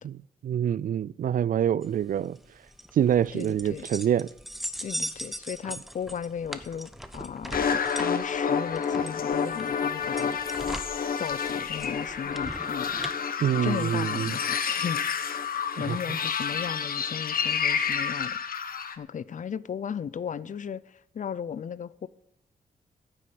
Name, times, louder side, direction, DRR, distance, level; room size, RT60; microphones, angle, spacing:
voice 1, 0.0-2.4 2.9-4.3 13.4-14.4 15.9-16.0, right 9 dB, 60° right, 0.4 m, -26 dB
sound 1, 1.8-13.1, equal, ahead, 1.0 m, -40 dB
voice 2, 3.3-3.9 4.8-10.4 11.2-13.1 13.6-18.4 19.0-22.1, left 7 dB, 55° left, 0.6 m, -36 dB
sound 2, 7.5-19.0, left 6 dB, 70° left, 1.1 m, -29 dB
10.0 x 7.7 x 9.3 m
cardioid pair, 90°, 16 cm